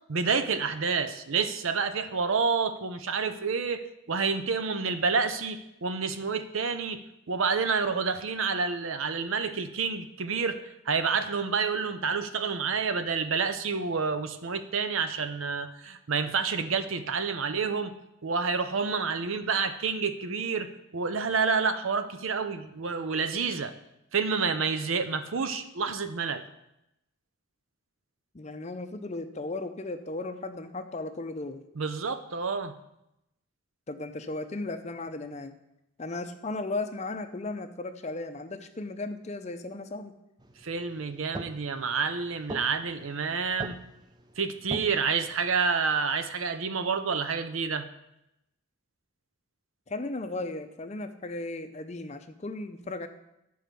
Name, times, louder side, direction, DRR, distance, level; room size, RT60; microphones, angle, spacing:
voice 1, 0.1-7.0 7.3-10.6 10.9-17.9 18.2-23.7 24.1-26.4 31.8-32.7 40.6-43.8 44.4-47.8, right 5 dB, 75° right, 10 dB, 0.7 m, -29 dB
voice 2, 28.3-31.6 33.9-35.5 36.0-40.1 49.9-53.1, left 2 dB, 30° left, 7 dB, 0.6 m, -36 dB
sound 1, 40.4-45.6, right 1 dB, 20° right, 0.5 m, -43 dB
9.2 x 4.7 x 6.8 m, 0.86 s
head